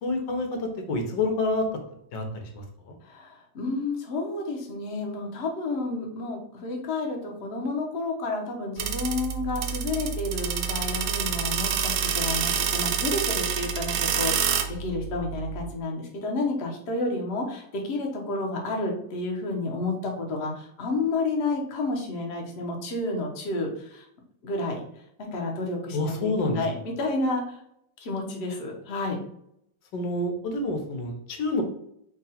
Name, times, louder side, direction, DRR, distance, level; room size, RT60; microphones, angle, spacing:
voice 1, 0.0-1.7 2.1-3.0 25.9-26.6 29.9-31.6, left 2 dB, 75° left, 4 dB, 1.4 m, -28 dB
voice 2, 3.0-14.5 14.8-24.1 24.4-24.8 25.2-27.6 28.0-29.2, left 2 dB, 45° left, 0 dB, 0.8 m, -30 dB
sound 1, 8.8-15.7, right 7 dB, 75° right, 1.2 m, -28 dB
3.7 x 2.3 x 4.1 m, 0.73 s
omnidirectional pair, 2.0 m